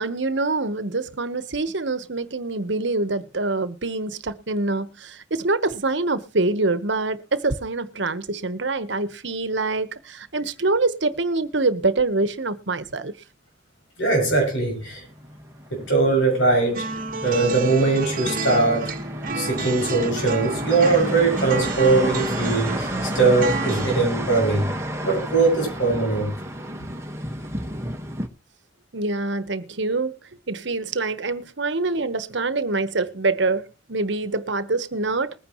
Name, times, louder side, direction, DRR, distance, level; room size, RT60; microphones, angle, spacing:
voice 1, 0.0-13.1 28.9-30.2 30.5-35.3, right 3 dB, 70° right, 1.1 m, -25 dB
voice 2, 14.0-15.0 15.7-16.8 17.2-18.9 19.3-24.7 25.0-26.3, right 3 dB, 85° left, 6.6 m, -21 dB
sound 1, 14.8-28.3, equal, 15° right, 1.4 m, -32 dB
sound 2, 16.7-23.9, right 3 dB, 45° right, 1.3 m, -30 dB
21.0 x 9.6 x 3.1 m
head